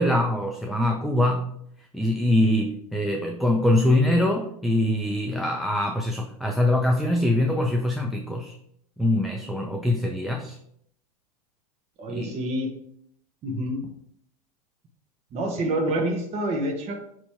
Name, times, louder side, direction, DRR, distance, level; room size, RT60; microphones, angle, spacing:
voice 1, 0.0-1.6 1.9-8.5 9.0-10.6 12.1-12.3 13.5-13.7, left 1 dB, ahead, 2 dB, 0.5 m, -23 dB
voice 2, 12.0-12.7 13.4-13.9 15.3-17.0, right 1 dB, 30° right, 2 dB, 1.1 m, -27 dB
6.8 x 3.0 x 4.5 m, 0.70 s
hypercardioid pair, 105°, 20 cm